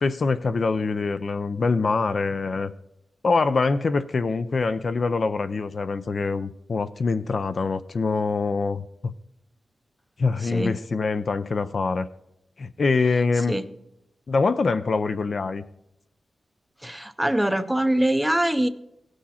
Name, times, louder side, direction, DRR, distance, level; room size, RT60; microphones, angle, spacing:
voice 1, 0.0-2.7 3.2-9.1 10.2-12.1 12.6-13.5 14.3-15.6, left 4 dB, 50° left, 11 dB, 0.4 m, -24 dB
voice 2, 10.4-10.8 13.4-13.6 16.8-18.7, right 1 dB, 5° right, 11 dB, 0.5 m, -23 dB
17.0 x 6.3 x 4.2 m, 0.85 s
wide cardioid pair, 140°, 0 cm